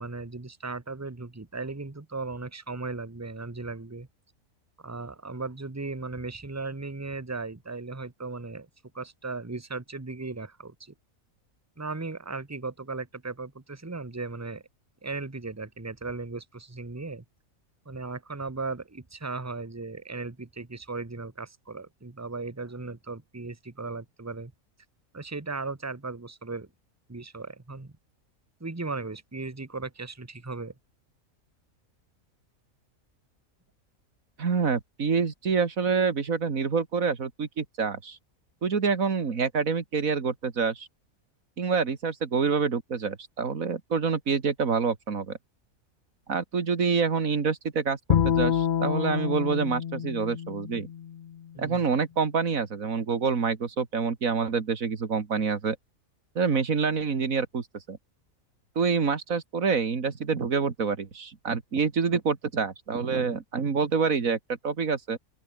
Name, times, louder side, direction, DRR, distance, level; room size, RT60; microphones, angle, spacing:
voice 1, 0.0-4.1 4.8-8.7 8.9-10.9 11.8-14.6 15.0-17.2 17.8-24.5 25.1-26.7 27.1-27.9 28.6-30.7 51.5-51.8, right 3 dB, 10° right, 1.2 m, -37 dB
voice 2, 34.4-38.2 38.6-40.9 41.6-45.4 46.3-50.9 51.6-55.8 56.4-58.0 58.8-64.4 64.6-65.2, right 5 dB, 75° right, 2.4 m, -27 dB
Bowed string instrument, 48.1-51.4, left 9 dB, 60° left, 0.5 m, -27 dB
open air
omnidirectional pair, 1.5 m